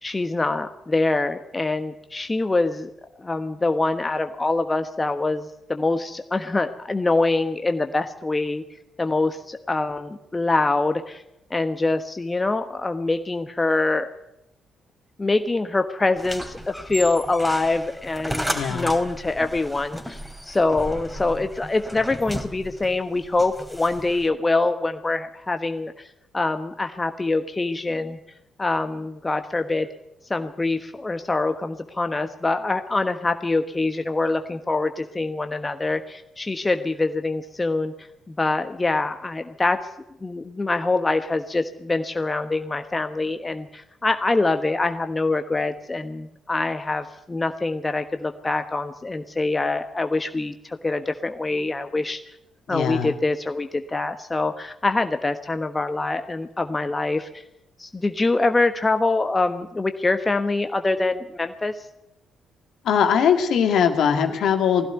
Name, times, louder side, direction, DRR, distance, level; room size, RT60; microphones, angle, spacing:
voice 1, 0.0-2.9 3.2-8.6 9.0-11.2 11.5-14.1 15.2-26.1 26.3-28.2 28.6-29.9 30.3-37.9 38.3-39.8 40.2-52.2 52.7-57.3 57.8-61.9, left 2 dB, 20° left, 8 dB, 1.3 m, -24 dB
sound 1, 16.2-24.3, equal, 5° right, 3.1 m, -34 dB
voice 2, 18.5-19.0 52.7-53.1 62.8-64.9, left 7 dB, 55° left, 6 dB, 2.1 m, -21 dB
21.0 x 16.0 x 8.1 m, 0.85 s
figure-of-eight pair, 40°, 0 cm